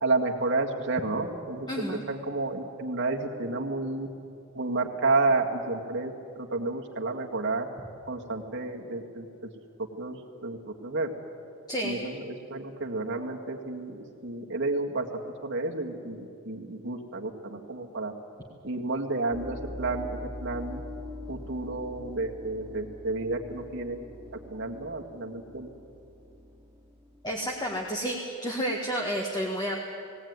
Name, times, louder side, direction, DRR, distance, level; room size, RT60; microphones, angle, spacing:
voice 1, 0.0-4.1 4.5-7.7 8.1-9.3 10.0-11.1 11.8-18.1 18.6-20.8 21.3-24.0 24.5-25.7, right 3 dB, 55° right, 0 dB, 1.9 m, -31 dB
voice 2, 1.7-2.0 11.7-12.0 27.2-29.8, equal, 20° left, 0 dB, 1.7 m, -30 dB
sound 1, 19.3-28.0, left 1 dB, 10° right, 1.0 m, -43 dB
19.0 x 18.0 x 9.6 m, 2.6 s
head